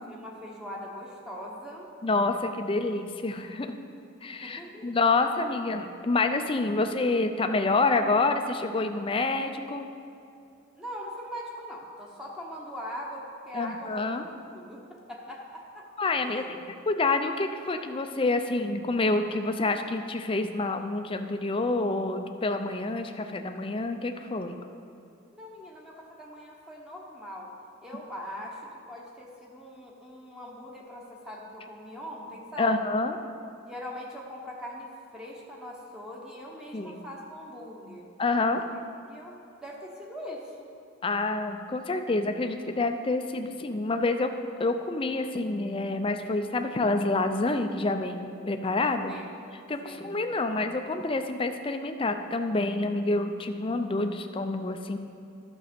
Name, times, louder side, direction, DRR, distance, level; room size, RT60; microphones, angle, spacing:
voice 1, 0.1-1.9 4.3-4.9 10.7-15.8 16.2-16.5 25.3-27.5 27.8-32.8 33.7-38.1 39.1-40.6 49.1-49.3 49.8-50.1, equal, 5° right, -3 dB, 0.9 m, -41 dB
voice 2, 2.0-3.8 4.2-9.9 13.5-14.3 16.0-24.6 32.6-33.2 36.7-37.0 38.2-38.6 41.0-44.3 44.6-49.1 49.7-55.0, left 3 dB, 25° left, 6 dB, 0.4 m, -28 dB
12.0 x 6.2 x 5.1 m, 2.5 s
head